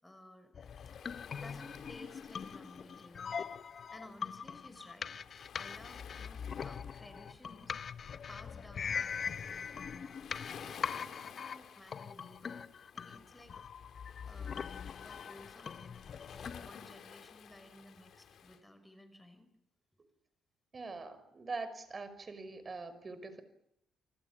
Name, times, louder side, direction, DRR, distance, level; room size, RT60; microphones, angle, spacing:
voice 1, 0.0-0.5 0.9-3.5 3.9-5.2 5.6-7.8 8.3-10.8 11.3-13.6 14.3-16.0 16.3-19.5 20.9-21.0, left 1 dB, 10° left, 9 dB, 5.8 m, -56 dB
sound 1, 0.5-16.7, left 6 dB, 50° left, 1.1 m, -42 dB
Waves surf, 0.6-18.6, left 7 dB, 65° left, 3.4 m, -54 dB
voice 2, 20.7-23.4, right 3 dB, 35° right, 12 dB, 5.4 m, -43 dB
29.0 x 20.0 x 7.5 m, 0.77 s
cardioid pair, 90°, 0 cm